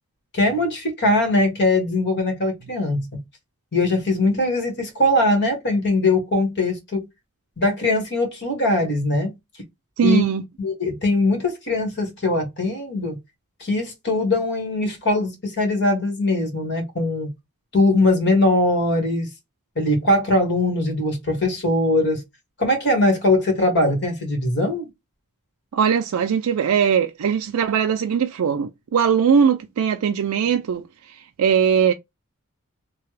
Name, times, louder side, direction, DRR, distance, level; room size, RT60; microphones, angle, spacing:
voice 1, 0.3-3.2 3.7-7.1 7.6-9.3 10.0-10.2 10.6-13.2 13.6-17.3 17.7-19.3 19.7-22.2 22.6-24.9, left 2 dB, 55° left, 1.6 m, -21 dB
voice 2, 10.0-10.4 25.7-31.9, right 7 dB, 80° right, 0.4 m, -20 dB
3.2 x 2.2 x 3.2 m
head